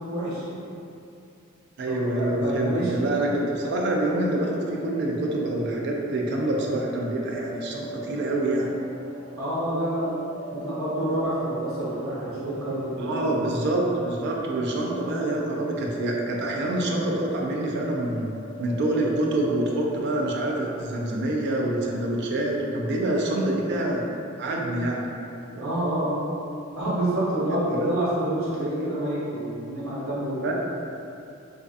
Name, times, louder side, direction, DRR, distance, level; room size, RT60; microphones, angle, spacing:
voice 1, 0.1-0.4 1.9-3.1 9.4-10.1 10.5-13.5 25.5-26.2 26.8-30.5, right 1 dB, 80° right, -9 dB, 0.8 m, -28 dB
voice 2, 1.8-8.7 13.0-18.3 18.6-24.0 24.4-25.1 27.7-27.9 30.3-30.5, right 1 dB, 55° right, -1 dB, 0.3 m, -26 dB
sound 1, 3.1-21.5, right 3 dB, ahead, 0.5 m, -42 dB
2.4 x 2.4 x 2.4 m, 2.6 s
head